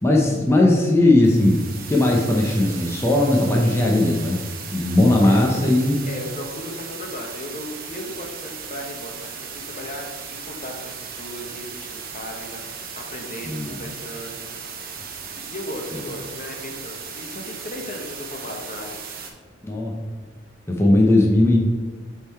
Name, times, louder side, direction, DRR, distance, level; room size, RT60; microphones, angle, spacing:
voice 1, 0.0-4.4 4.7-6.0 13.4-13.7 15.9-16.0 19.6-19.9 20.7-21.6, left 1 dB, 15° left, -2 dB, 0.8 m, -18 dB
white-noise, 1.2-19.3, right 6 dB, 50° right, 1.0 m, -37 dB
voice 2, 6.1-14.5 15.4-19.0, left 1 dB, 40° left, 2 dB, 1.0 m, -36 dB
7.7 x 3.8 x 4.3 m, 1.5 s
head